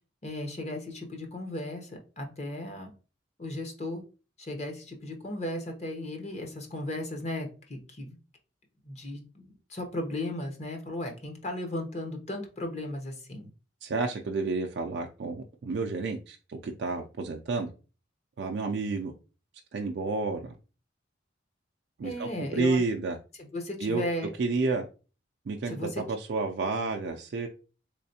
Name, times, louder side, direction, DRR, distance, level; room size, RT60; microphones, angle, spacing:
voice 1, 0.2-2.9 3.4-4.0 4.4-8.2 8.8-13.5 22.0-22.8 23.4-24.3 25.7-26.0, left 1 dB, 35° left, 4 dB, 0.8 m, -36 dB
voice 2, 13.8-17.7 18.4-19.1 19.7-20.5 22.0-23.2 23.8-24.0 24.4-24.9 25.5-27.5, right 3 dB, 60° right, 2 dB, 0.4 m, -30 dB
3.5 x 3.2 x 2.7 m, 0.34 s
head